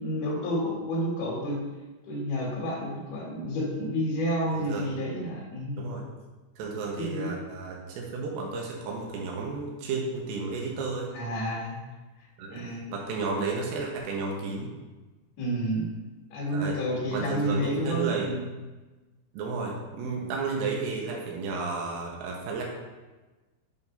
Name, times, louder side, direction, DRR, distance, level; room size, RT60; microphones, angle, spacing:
voice 1, 0.0-1.6 2.1-5.9 7.0-7.3 11.1-11.8 12.5-12.8 15.4-15.9 16.3-18.5, equal, 50° left, -5 dB, 3.1 m, -30 dB
voice 2, 4.5-4.9 5.8-6.0 6.6-11.1 12.4-12.6 12.9-14.7 16.5-16.8 17.1-18.3 19.3-22.6, right 4 dB, 90° right, -1 dB, 3.8 m, -32 dB
9.7 x 7.4 x 2.7 m, 1.2 s
omnidirectional pair, 5.8 m